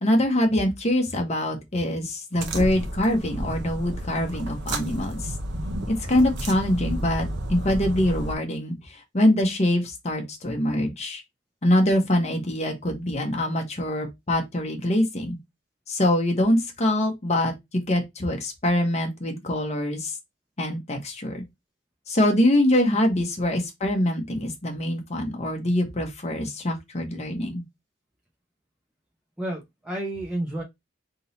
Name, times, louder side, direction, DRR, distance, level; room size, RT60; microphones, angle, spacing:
voice 1, 0.0-5.3 5.9-11.2 11.6-15.4 15.9-20.2 20.6-21.4 22.1-27.6, left 1 dB, 35° left, 1.1 m, -24 dB
sound 1, 2.3-8.3, right 1 dB, 65° right, 0.8 m, -32 dB
voice 2, 29.4-30.6, right 1 dB, 5° right, 0.9 m, -31 dB
3.7 x 2.9 x 4.0 m
head